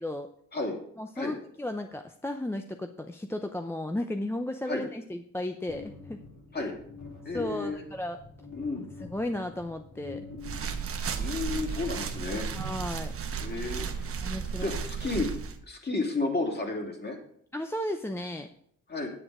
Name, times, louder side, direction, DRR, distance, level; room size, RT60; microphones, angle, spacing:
voice 1, 1.0-6.2 6.6-6.7 7.3-8.2 8.8-10.2 12.5-13.1 14.2-14.7 15.1-15.2 17.5-18.5, left 1 dB, 10° left, 6 dB, 0.6 m, -34 dB
sound 1, 5.7-12.3, left 4 dB, 65° left, 3.3 m, -46 dB
voice 2, 7.2-7.8 8.5-8.9 11.2-12.5 13.4-14.1 14.6-15.3 15.7-17.2 18.9-19.1, left 3 dB, 35° left, 1 dB, 2.7 m, -32 dB
sound 2, 10.4-15.6, right 6 dB, 50° right, 1.2 m, -34 dB
8.9 x 7.7 x 4.8 m, 0.67 s
cardioid pair, 90°, 30 cm